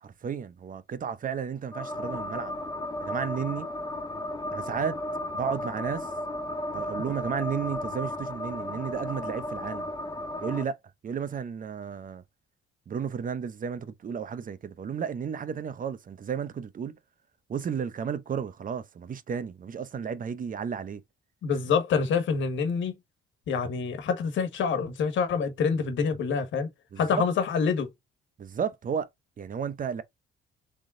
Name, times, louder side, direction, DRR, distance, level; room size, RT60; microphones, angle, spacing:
voice 1, 0.0-2.5 3.0-3.7 4.5-5.0 5.3-6.1 6.7-9.9 10.4-10.8 11.0-12.2 12.9-17.0 17.5-21.0 26.9-27.3 28.4-29.1 29.4-30.0, right 7 dB, 45° right, 0.8 m, -33 dB
sound 1, 1.7-10.6, left 1 dB, 20° left, 0.7 m, -34 dB
voice 2, 21.4-23.0 23.5-26.7 27.0-27.9, left 6 dB, 70° left, 1.5 m, -26 dB
3.7 x 3.6 x 3.7 m
cardioid pair, 90°, 20 cm